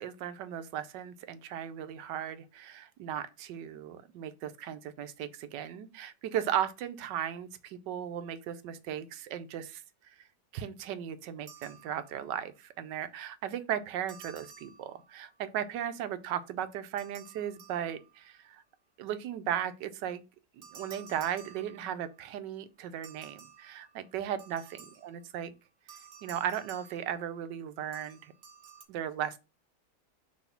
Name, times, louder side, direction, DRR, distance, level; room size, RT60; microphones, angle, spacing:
voice 1, 0.0-9.8 10.5-18.6 19.0-20.2 20.6-25.5 26.2-28.3 28.9-29.4, right 10 dB, 85° right, 1.3 m, -36 dB
sound 1, 11.5-12.4 14.1-15.4 17.0-18.4 20.6-22.3 23.0-25.3 25.9-27.6 27.9-28.8, right 7 dB, 50° right, 1.3 m, -53 dB
6.3 x 3.2 x 5.6 m
omnidirectional pair, 1.9 m